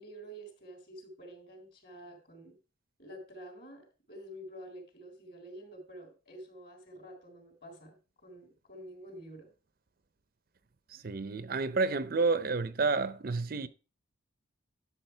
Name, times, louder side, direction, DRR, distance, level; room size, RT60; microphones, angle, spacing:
voice 1, 0.0-2.6 3.0-9.5, right 1 dB, 45° left, 3.8 m, -49 dB
voice 2, 10.9-13.7, right 4 dB, 45° right, 0.5 m, -30 dB
11.5 x 7.2 x 4.5 m
head